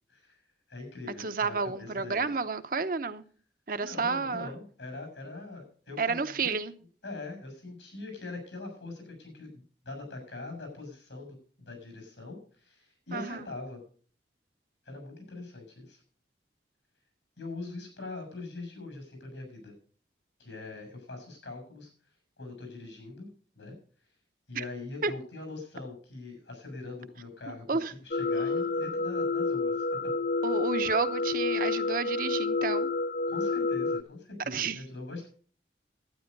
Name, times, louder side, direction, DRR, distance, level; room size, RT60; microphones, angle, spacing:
voice 1, 0.1-0.4 0.7-2.3 3.8-6.6 7.0-13.8 14.8-16.0 17.4-19.7 20.4-21.9 22.4-23.3 23.5-23.7 24.5-30.1 33.3-35.3, left 3 dB, 85° left, 6.6 m, -42 dB
voice 2, 1.2-3.2 3.7-4.5 6.0-6.7 13.1-13.5 24.5-24.6 25.0-25.1 27.5-27.9 28.4-28.5 30.4-32.9 34.5-34.8, right 4 dB, 50° right, 0.8 m, -31 dB
sound 1, 28.1-34.0, left 3 dB, 50° left, 0.4 m, -29 dB
12.0 x 9.6 x 5.3 m
head